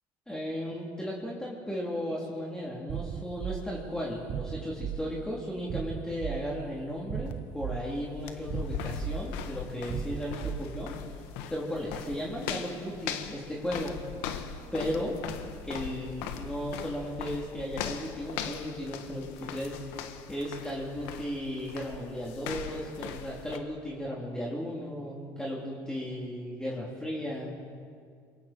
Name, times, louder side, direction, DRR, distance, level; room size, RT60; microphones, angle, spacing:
voice 1, 0.3-10.9 11.5-14.0 14.7-15.2 15.6-27.7, equal, 10° left, -5 dB, 4.0 m, -35 dB
sound 1, 2.9-11.2, right 9 dB, 50° right, 0.9 m, -38 dB
sound 2, 7.3-23.6, left 8 dB, 80° left, 1.6 m, -40 dB
27.0 x 23.0 x 4.8 m, 2.1 s
supercardioid pair, 100°, 9 cm